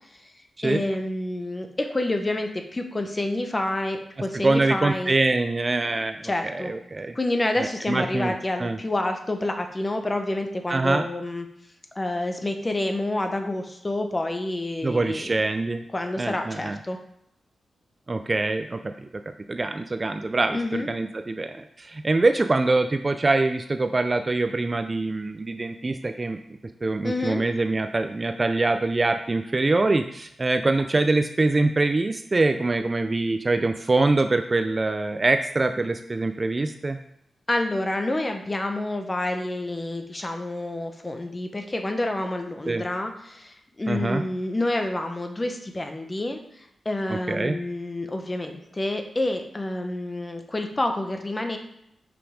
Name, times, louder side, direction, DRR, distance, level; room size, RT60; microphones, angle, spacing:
voice 1, 0.6-5.1 6.2-6.7 7.1-11.5 11.9-15.3 15.9-17.0 20.5-20.9 27.0-27.4 37.5-46.4 46.8-51.6, left 1 dB, 20° left, 5 dB, 0.8 m, -28 dB
voice 2, 4.3-7.1 7.6-8.3 8.6-8.8 10.7-11.1 14.8-15.8 16.2-16.8 18.1-19.1 19.5-26.4 26.8-37.0 42.7-42.8 43.9-44.2 47.1-47.6, right 2 dB, 25° right, 8 dB, 0.3 m, -24 dB
6.1 x 5.1 x 4.9 m, 0.78 s
wide cardioid pair, 140°, 0 cm